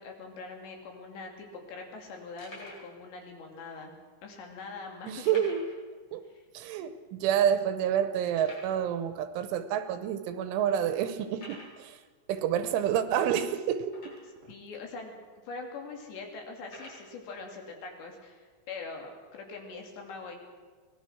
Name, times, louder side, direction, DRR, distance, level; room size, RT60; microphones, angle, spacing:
voice 1, 0.0-3.9 4.2-5.4 14.5-15.1 15.5-20.4, left 4 dB, 65° left, 2 dB, 4.6 m, -43 dB
sound 1, 1.3-1.4 1.9-2.0 2.4-2.9 3.7-3.8 5.2-5.8 6.1-6.2 6.6-6.7 7.3-7.4 8.3-8.8 9.6-9.7 10.3-10.4 11.3-11.8 13.9-14.4 15.2-15.3 16.6-17.1, left 1 dB, 35° left, 7.1 m, -48 dB
voice 2, 5.1-5.7 6.1-6.3 6.5-12.0 12.3-14.1 14.4-14.5, right 9 dB, 80° right, 10 dB, 3.3 m, -29 dB
24.0 x 19.0 x 6.1 m, 1.4 s
omnidirectional pair, 5.7 m